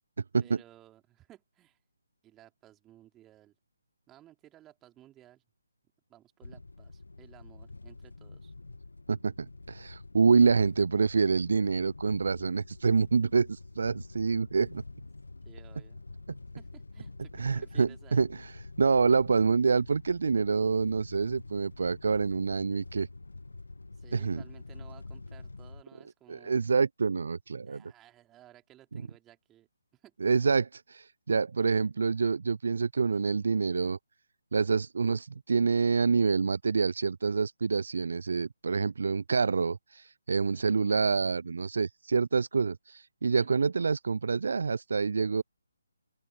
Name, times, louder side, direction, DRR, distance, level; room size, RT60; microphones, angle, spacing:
voice 1, 0.4-1.8 2.2-3.6 4.1-5.4 6.1-8.5 15.4-16.0 16.5-18.3 23.9-26.6 27.6-30.1 40.5-40.8 43.4-43.6, right 13 dB, 15° right, 3.3 m, -57 dB
sound 1, 6.4-25.8, left 3 dB, 70° left, 1.0 m, -47 dB
voice 2, 9.1-14.8 17.4-18.5 18.8-23.1 24.1-24.4 26.3-27.8 30.2-34.0 34.5-45.4, right 5 dB, 55° right, 0.6 m, -27 dB
open air
figure-of-eight pair, 145°, 0 cm